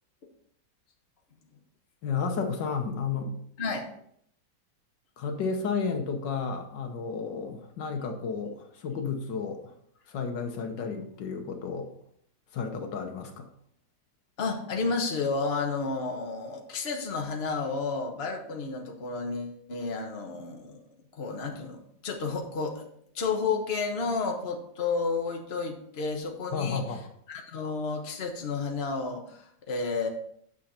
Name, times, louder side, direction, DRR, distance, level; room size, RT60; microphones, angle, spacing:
voice 1, 2.0-3.4 5.2-9.7 10.1-11.9 12.5-13.5 26.5-27.1, left 5 dB, 75° left, 5 dB, 1.6 m, -32 dB
voice 2, 14.4-20.8 21.1-22.9 23.1-26.8 27.3-30.1, left 4 dB, 35° left, 2 dB, 1.4 m, -31 dB
9.1 x 6.7 x 4.3 m, 0.67 s
omnidirectional pair, 2.0 m